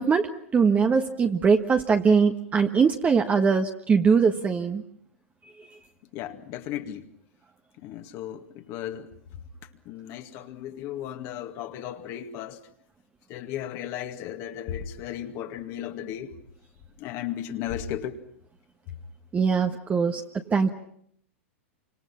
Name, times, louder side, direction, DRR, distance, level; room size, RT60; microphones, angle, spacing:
voice 1, 0.0-4.8 5.6-5.7 19.3-20.7, right 5 dB, 20° right, 1.4 m, -22 dB
voice 2, 6.1-7.1 7.8-9.1 9.9-12.6 13.3-16.3 17.0-18.2, left 10 dB, 45° left, 2.1 m, -35 dB
28.0 x 26.0 x 5.8 m
hypercardioid pair, 105°, 7 cm